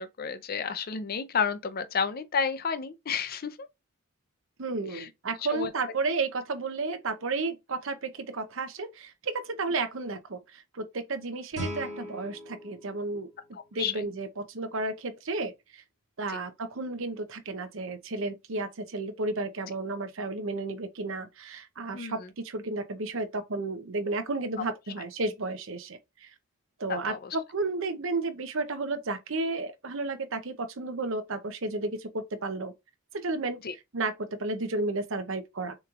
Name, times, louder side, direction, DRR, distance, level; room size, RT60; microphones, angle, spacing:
voice 1, 0.0-3.5 4.9-5.1 5.5-5.7 13.8-14.0 21.9-22.2 26.9-27.2 33.6-33.7, left 6 dB, 45° left, 0.5 m, -31 dB
voice 2, 4.6-13.3 13.7-15.8 16.2-22.2 22.4-26.3 26.8-32.7 33.1-33.6 33.9-35.8, right 3 dB, 60° right, 0.7 m, -32 dB
Guitar, 11.5-14.3, equal, 30° right, 2.2 m, -41 dB
6.6 x 3.0 x 2.4 m
head